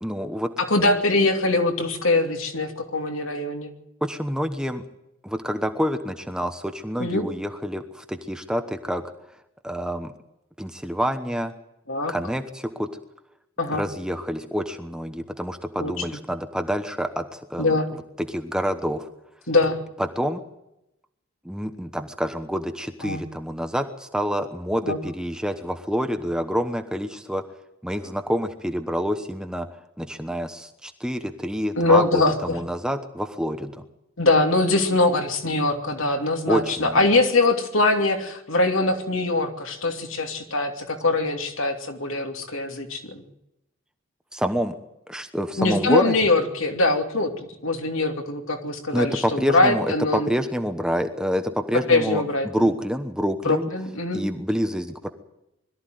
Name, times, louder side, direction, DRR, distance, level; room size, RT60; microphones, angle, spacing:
voice 1, 0.0-0.5 4.0-4.8 5.2-9.0 9.6-10.1 10.6-11.5 12.1-12.9 13.7-17.8 18.2-19.1 20.2-20.4 21.4-27.4 27.8-29.7 30.0-33.8 36.5-37.1 44.3-44.8 45.1-46.1 48.9-53.7 54.1-55.1, equal, 5° right, 7 dB, 1.0 m, -27 dB
voice 2, 0.6-3.7 7.0-7.3 11.9-12.1 13.6-13.8 15.8-15.9 17.6-17.9 19.5-19.8 23.0-23.2 24.9-25.0 31.8-32.6 34.2-43.2 45.6-47.3 47.6-50.3 51.9-52.7 53.4-54.2, left 2 dB, 70° left, 4 dB, 2.8 m, -22 dB
21.5 x 13.5 x 9.3 m, 0.87 s
head